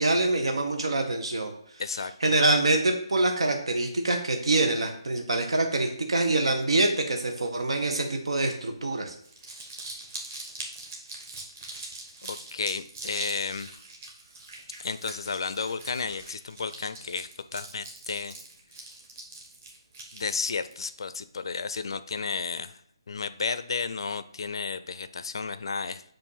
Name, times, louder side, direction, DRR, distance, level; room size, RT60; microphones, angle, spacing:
voice 1, 0.0-1.5 2.2-9.1, right 2 dB, 85° right, 4 dB, 0.9 m, -25 dB
voice 2, 1.8-2.1 12.2-13.7 14.8-18.3 20.1-22.7 23.1-26.1, left 5 dB, 60° left, 13 dB, 0.4 m, -32 dB
Crumpling crinkling, 9.1-20.9, right 2 dB, 30° right, 1.1 m, -42 dB
7.1 x 2.6 x 5.5 m, 0.67 s
hypercardioid pair, 170°, 3 cm